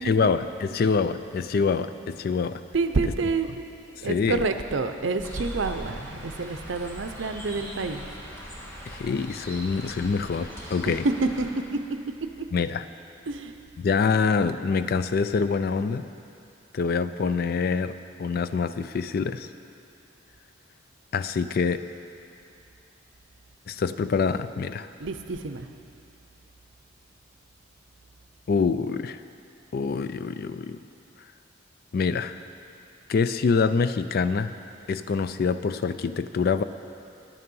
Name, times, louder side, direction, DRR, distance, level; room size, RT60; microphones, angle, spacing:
voice 1, 0.0-2.6 3.0-3.1 4.0-4.5 8.9-11.1 12.5-12.9 13.8-16.1 16.7-17.9 18.2-19.5 21.1-21.8 23.7-24.9 28.5-29.2 29.7-30.8 31.9-32.4 33.1-34.5 34.9-36.6, left 5 dB, 50° left, 12 dB, 0.3 m, -25 dB
voice 2, 2.7-3.7 4.0-8.1 10.9-11.0 11.4-11.5 13.3-13.5 25.0-25.7, right 4 dB, 70° right, 8 dB, 0.6 m, -28 dB
sound 1, 5.2-11.5, equal, 15° left, 1.6 m, -40 dB
11.0 x 9.4 x 5.4 m, 2.6 s
head